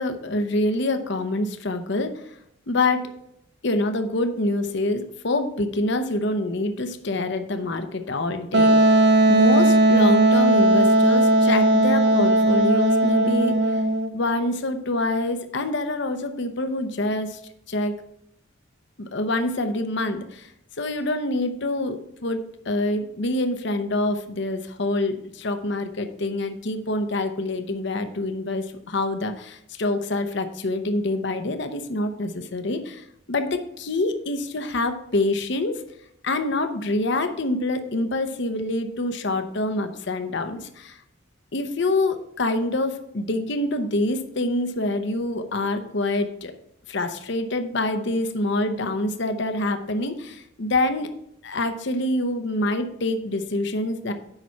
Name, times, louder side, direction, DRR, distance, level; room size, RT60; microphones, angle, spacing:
voice 1, 0.0-2.3 2.7-3.1 3.6-9.0 9.3-13.8 14.1-17.4 17.7-17.9 19.0-20.5 20.8-35.8 36.2-41.0 41.5-46.5 46.9-51.1 51.4-54.1, left 2 dB, 60° left, 7 dB, 0.8 m, -26 dB
Wind instrument woodwind instrument, 8.5-14.1, right 1 dB, 60° right, 0.7 m, -17 dB
9.0 x 5.8 x 4.5 m, 0.74 s
head